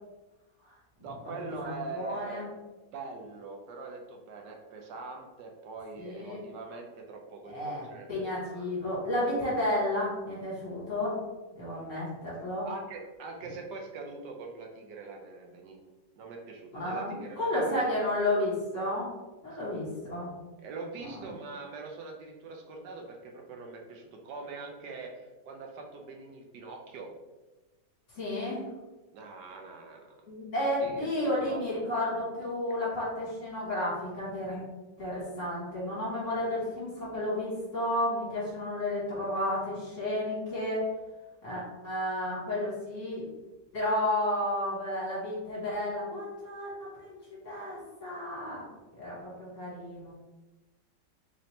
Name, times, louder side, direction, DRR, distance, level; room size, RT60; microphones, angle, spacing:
voice 1, 1.0-2.5 2.9-8.1 8.5-9.0 12.6-15.9 16.2-17.9 20.6-27.1 29.1-30.2 30.6-31.8, right 3 dB, 75° right, 1 dB, 1.2 m, -43 dB
voice 2, 1.6-2.4 6.0-6.4 7.5-11.2 11.6-12.7 16.7-19.1 19.4-20.3 21.0-21.4 28.1-28.6 30.3-34.6 35.0-40.9 41.4-43.2 43.7-46.7 47.0-47.2 47.4-48.7 49.0-50.1, left 1 dB, 45° left, -7 dB, 1.8 m, -32 dB
4.2 x 2.8 x 3.1 m, 1.2 s
omnidirectional pair, 1.9 m